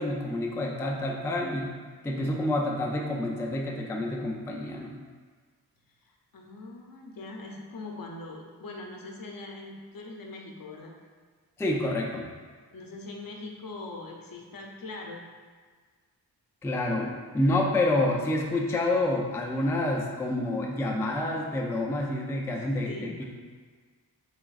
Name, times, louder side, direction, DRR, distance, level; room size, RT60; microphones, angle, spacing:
voice 1, 0.0-1.7 2.0-5.0 11.6-12.3 16.6-23.2, left 1 dB, 5° left, -1 dB, 0.3 m, -28 dB
voice 2, 6.0-10.9 12.7-15.2 22.5-23.2, left 2 dB, 55° left, 0 dB, 0.6 m, -42 dB
3.4 x 3.0 x 2.4 m, 1.5 s
cardioid pair, 50°, 42 cm